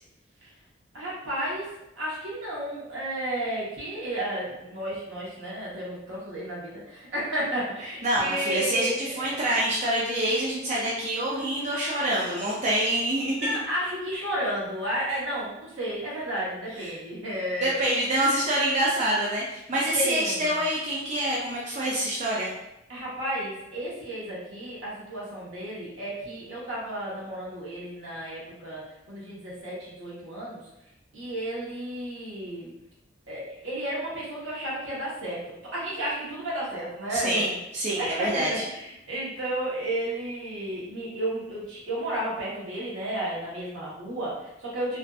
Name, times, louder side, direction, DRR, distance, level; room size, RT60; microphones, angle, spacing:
voice 1, 0.9-1.7 2.0-9.5 11.2-11.7 13.4-17.9 19.9-20.6 22.9-30.6 31.1-32.7 33.3-35.4 35.7-37.5 38.0-45.0, right 1 dB, 75° right, -6 dB, 1.0 m, -32 dB
voice 2, 8.0-13.6 16.8-16.9 17.6-22.5 37.1-38.6, right 1 dB, 35° right, -6 dB, 0.4 m, -26 dB
2.5 x 2.5 x 2.3 m, 0.87 s
head